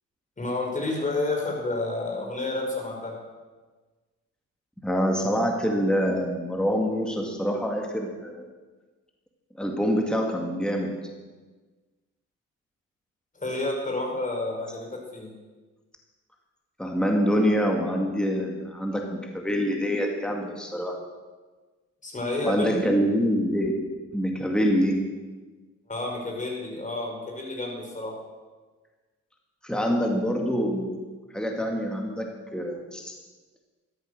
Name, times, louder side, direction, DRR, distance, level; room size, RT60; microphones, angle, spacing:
voice 1, 0.4-3.2 13.4-15.3 22.0-22.9 25.9-28.2, left 2 dB, 25° left, 0 dB, 5.3 m, -30 dB
voice 2, 4.8-8.5 9.6-10.9 16.8-19.1 19.3-21.0 22.4-23.9 24.1-25.1 29.6-31.0 31.3-33.2, equal, 5° left, 2 dB, 2.1 m, -25 dB
13.0 x 12.5 x 6.6 m, 1.3 s
cardioid pair, 90°, 30 cm